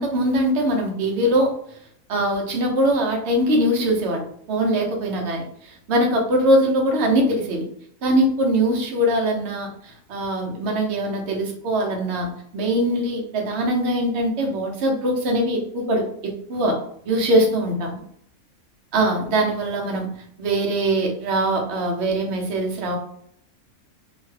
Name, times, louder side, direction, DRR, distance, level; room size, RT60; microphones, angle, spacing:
voice 1, 0.0-1.5 2.1-7.6 8.0-16.8 17.1-18.0 18.9-20.1 20.4-23.0, right 1 dB, 55° right, 1 dB, 0.9 m, -22 dB
2.8 x 2.1 x 3.2 m, 0.68 s
omnidirectional pair, 1.5 m